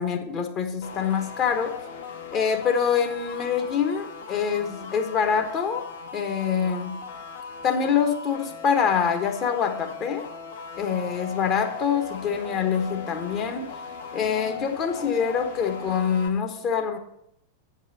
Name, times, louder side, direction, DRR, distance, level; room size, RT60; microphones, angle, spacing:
voice 1, 0.0-1.8 2.3-5.8 6.1-7.0 7.6-10.3 10.8-13.7 14.1-17.0, left 7 dB, 35° left, 5 dB, 1.2 m, -25 dB
sound 1, 0.8-16.3, left 5 dB, 65° left, 1.3 m, -39 dB
8.1 x 5.4 x 6.5 m, 0.76 s
figure-of-eight pair, 90°, 0 cm